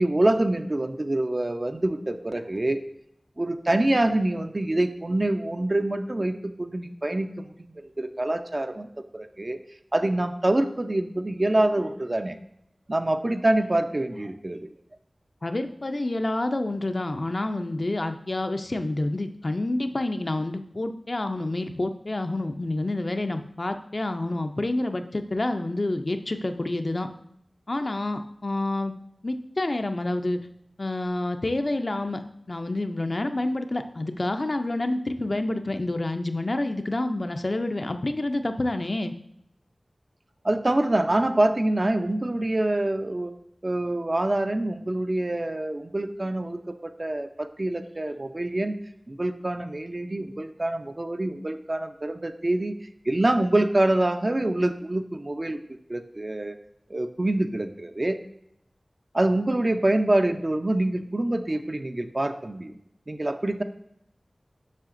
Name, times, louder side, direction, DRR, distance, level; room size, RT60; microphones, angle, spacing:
voice 1, 0.0-2.8 3.4-7.5 7.8-9.6 9.9-12.4 12.9-14.7 40.4-43.3 43.6-48.8 49.1-52.8 53.1-55.6 55.9-56.6 56.9-58.2 59.1-62.8 63.1-63.6, right 1 dB, 45° right, 7 dB, 0.5 m, -25 dB
voice 2, 15.4-27.1 27.7-28.9 29.2-30.4 30.8-32.2 32.5-39.1, left 2 dB, 55° left, 7 dB, 0.4 m, -28 dB
7.4 x 5.7 x 2.5 m, 0.76 s
wide cardioid pair, 40°, 0 cm